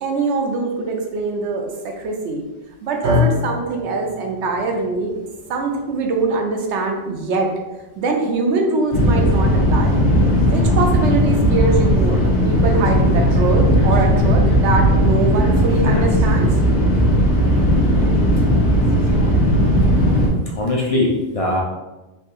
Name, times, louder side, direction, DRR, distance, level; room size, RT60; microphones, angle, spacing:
voice 1, 0.0-2.4 2.8-5.1 5.5-7.5 8.0-10.0 10.4-16.5, right 3 dB, 90° right, 2 dB, 0.9 m, -23 dB
sound 1, 3.0-11.3, left 3 dB, 65° right, 0.7 m, -28 dB
sound 2, 8.9-20.3, equal, 75° left, 1.1 m, -16 dB
voice 2, 19.8-21.6, left 2 dB, 60° left, -2 dB, 0.3 m, -22 dB
3.6 x 2.7 x 2.5 m, 1.1 s
omnidirectional pair, 1.1 m